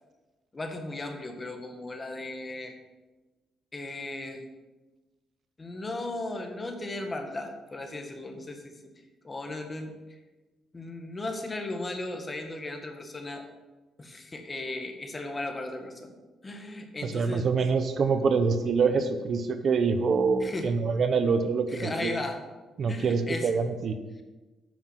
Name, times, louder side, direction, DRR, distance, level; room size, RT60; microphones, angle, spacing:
voice 1, 0.5-2.7 3.7-4.4 5.6-8.9 9.2-9.9 10.7-13.5 14.0-16.1 16.4-17.5 20.4-20.7 21.7-22.5 22.9-23.5, left 2 dB, 25° left, 5 dB, 1.6 m, -36 dB
voice 2, 17.0-22.2 22.8-24.0, right 5 dB, 55° right, 9 dB, 0.8 m, -25 dB
9.2 x 6.0 x 7.4 m, 1.2 s
cardioid pair, 90°, 0 cm